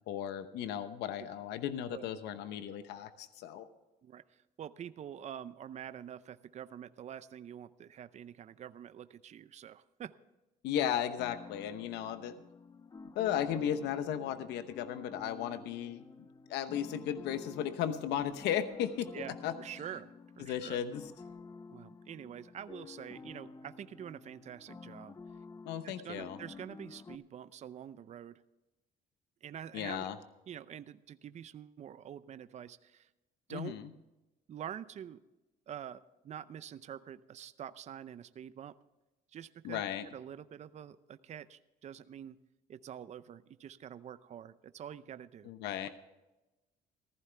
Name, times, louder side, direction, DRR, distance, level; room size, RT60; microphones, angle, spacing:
voice 1, 0.0-3.7 10.6-12.4 13.1-19.5 20.4-21.1 25.6-26.4 29.7-30.2 33.5-33.9 39.6-40.1 45.4-45.9, left 10 dB, 85° left, 11 dB, 0.9 m, -35 dB
voice 2, 4.0-10.1 19.1-20.8 21.7-25.2 25.8-28.4 29.4-30.1 30.5-33.1 33.5-33.7 34.5-35.2 35.7-38.7 39.3-39.8 40.1-42.4 42.7-45.5 45.8-45.9, right 9 dB, 45° right, 14 dB, 0.6 m, -46 dB
sound 1, 11.2-27.2, left 4 dB, 20° left, 0.7 m, -51 dB
15.0 x 14.5 x 3.4 m, 1.0 s
cardioid pair, 110°, 17 cm